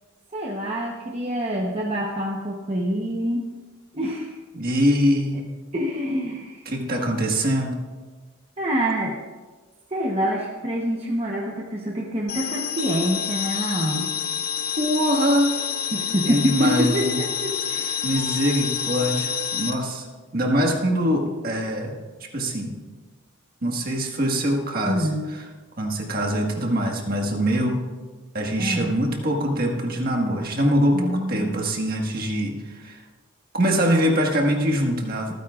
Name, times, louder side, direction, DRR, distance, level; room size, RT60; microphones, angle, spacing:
voice 1, 0.3-3.5 3.9-4.4 5.3-5.4 5.7-6.6 8.6-9.2 9.9-14.1 15.9-18.0 24.8-25.3 28.6-28.9 30.9-31.6, equal, 30° right, -1 dB, 1.0 m, -26 dB
voice 2, 4.5-5.5 6.6-7.8 14.8-15.5 16.2-17.2 18.0-20.1 20.3-22.0 22.3-22.8 23.6-25.4 25.8-27.8 28.3-33.0 33.5-35.3, equal, 45° right, 1 dB, 1.6 m, -23 dB
sound 1, 12.3-19.7, left 8 dB, 45° left, 0.9 m, -28 dB
25.5 x 9.6 x 2.5 m, 1.4 s
head